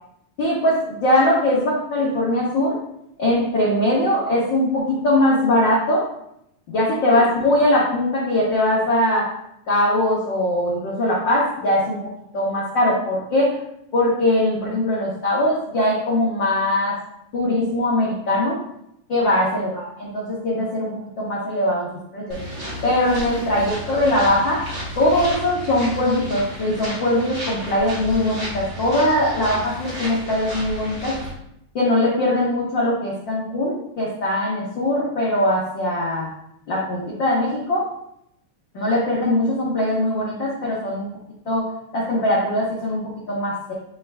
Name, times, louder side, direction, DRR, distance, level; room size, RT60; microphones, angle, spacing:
voice 1, 0.4-2.8 3.2-6.0 6.7-9.3 9.7-12.0 12.3-13.5 13.9-17.0 17.3-18.6 19.1-19.8 20.1-20.9 21.2-22.4 22.8-24.6 25.0-31.1 31.7-36.3 36.7-37.8 38.7-41.1 41.5-41.7 41.9-43.0 43.3-43.7, left 1 dB, 85° left, -6 dB, 1.0 m, -21 dB
sound 1, 22.3-31.3, equal, 60° right, 0.7 m, -32 dB
8.5 x 3.3 x 3.4 m, 0.78 s
omnidirectional pair, 3.9 m